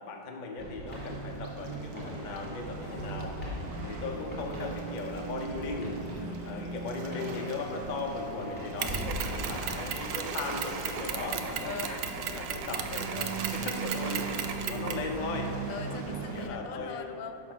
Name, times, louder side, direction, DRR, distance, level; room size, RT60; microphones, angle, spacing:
voice 1, 0.1-3.4 3.8-5.9 6.5-11.8 12.3-15.5 15.9-17.1, left 3 dB, 55° left, 2 dB, 0.5 m, -37 dB
sound 1, 0.6-9.9, equal, 5° left, 2.0 m, -42 dB
Waves surf, 0.9-16.5, right 4 dB, 60° right, 1.2 m, -39 dB
voice 2, 2.8-4.1 6.1-6.8 8.8-9.2 11.6-12.1 15.7-17.5, left 6 dB, 90° left, 8 dB, 1.3 m, -43 dB
Mechanisms, 8.8-15.1, right 7 dB, 85° right, 1.3 m, -35 dB
10.0 x 3.8 x 6.1 m, 2.6 s
omnidirectional pair, 1.9 m